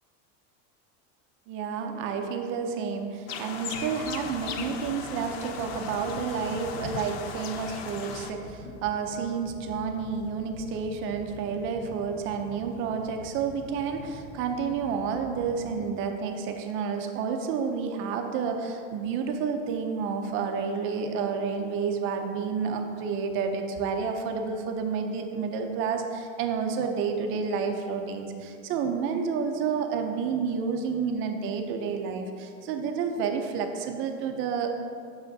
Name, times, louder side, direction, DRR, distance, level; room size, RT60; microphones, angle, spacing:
voice 1, 1.5-34.7, right 6 dB, 35° right, 5 dB, 0.4 m, -30 dB
sound 1, 3.3-8.3, left 6 dB, 50° left, 0.5 m, -37 dB
sound 2, 3.9-15.8, left 1 dB, 90° left, 1.1 m, -46 dB
8.0 x 6.3 x 2.6 m, 2.4 s
supercardioid pair, 160°, 39 cm